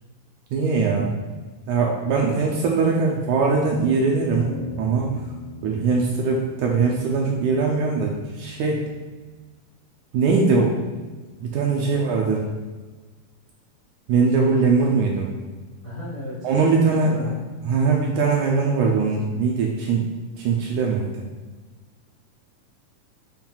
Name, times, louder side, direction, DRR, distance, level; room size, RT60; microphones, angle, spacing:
voice 1, 0.5-1.2 1.7-4.5 4.8-5.1 5.6-8.8 10.1-10.7 11.4-12.4 14.1-15.3 16.4-17.3 17.7-21.2, right 4 dB, 75° right, -1 dB, 1.9 m, -21 dB
voice 2, 2.2-2.5 11.8-12.1 15.8-16.5 16.8-17.4, left 1 dB, 50° left, -9 dB, 1.0 m, -34 dB
sound 1, 4.4-8.9, left 2 dB, 85° left, 2.4 m, -39 dB
7.3 x 5.5 x 2.4 m, 1.3 s
omnidirectional pair, 4.0 m